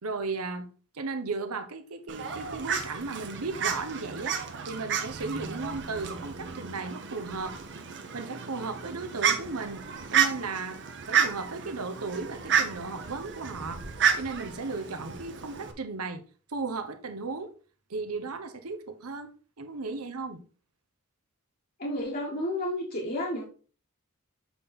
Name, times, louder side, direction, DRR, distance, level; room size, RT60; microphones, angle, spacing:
voice 1, 0.0-0.7 0.9-4.4 4.6-7.6 8.1-9.8 10.1-10.8 11.1-13.8 14.2-16.2 16.5-17.5 17.9-19.3 19.6-20.4, right 3 dB, 85° right, 1.0 m, -35 dB
Fowl, 2.1-15.7, right 7 dB, 55° right, 0.9 m, -31 dB
voice 2, 21.8-23.4, left 1 dB, 45° left, 1.3 m, -31 dB
7.5 x 3.7 x 4.2 m
head